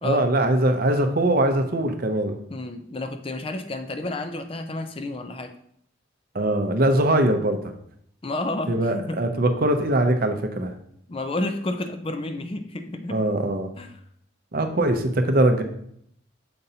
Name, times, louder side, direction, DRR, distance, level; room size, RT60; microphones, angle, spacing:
voice 1, 0.0-2.4 6.3-7.6 8.7-10.7 13.1-13.7 14.5-15.6, right 1 dB, 45° right, 6 dB, 0.6 m, -21 dB
voice 2, 2.5-5.5 8.2-9.2 11.1-13.2 13.8-13.9, left 2 dB, 25° left, 8 dB, 0.5 m, -30 dB
6.8 x 5.3 x 2.7 m, 0.69 s
head